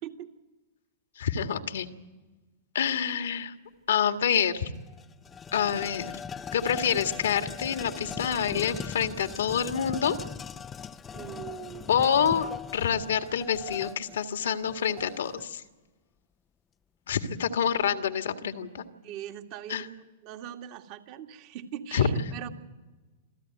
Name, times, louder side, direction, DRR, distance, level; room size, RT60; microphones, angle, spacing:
voice 1, 1.2-1.9 2.7-3.5 3.9-4.7 5.5-6.1 6.5-10.2 11.9-15.6 17.1-18.8 19.7-19.9 21.9-22.1, left 8 dB, 70° left, 7 dB, 1.9 m, -27 dB
sound 1, 4.3-4.4 4.8-15.5, left 7 dB, 20° left, 0.7 m, -40 dB
voice 2, 11.1-11.9 17.8-17.9 19.0-22.5, right 10 dB, 45° right, 4 dB, 2.2 m, -41 dB
27.5 x 15.0 x 9.3 m, 1.2 s
hypercardioid pair, 105°, 0 cm